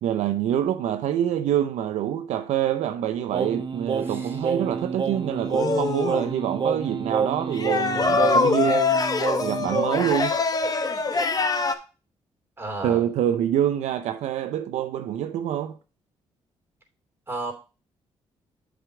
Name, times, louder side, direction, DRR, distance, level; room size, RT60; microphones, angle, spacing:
voice 1, 0.0-8.9 9.4-10.4 12.8-15.8, right 10 dB, 80° right, 0.6 m, -26 dB
Singing, 3.3-10.1, right 5 dB, 45° right, 0.9 m, -28 dB
voice 2, 4.0-4.4 12.6-13.0 17.3-17.5, right 2 dB, 20° right, 3.1 m, -33 dB
sound 1, 5.5-6.3 7.5-11.7, left 4 dB, 35° left, 1.1 m, -24 dB
7.6 x 5.1 x 4.8 m
cardioid pair, 75°, 12 cm